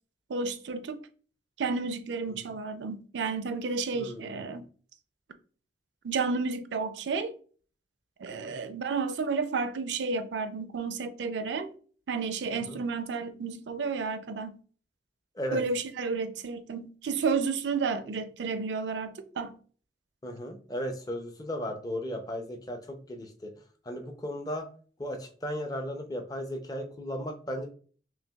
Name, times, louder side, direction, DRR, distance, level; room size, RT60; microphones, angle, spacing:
voice 1, 0.3-1.0 1.6-4.6 6.0-7.3 8.2-11.7 12.1-14.6 15.5-19.5, right 4 dB, 80° right, 0.4 m, -31 dB
voice 2, 3.9-4.4 8.3-8.5 12.7-12.8 15.4-15.6 20.2-23.5 23.9-24.7 25.0-27.7, equal, 20° left, 0.5 m, -36 dB
5.7 x 2.2 x 2.3 m
head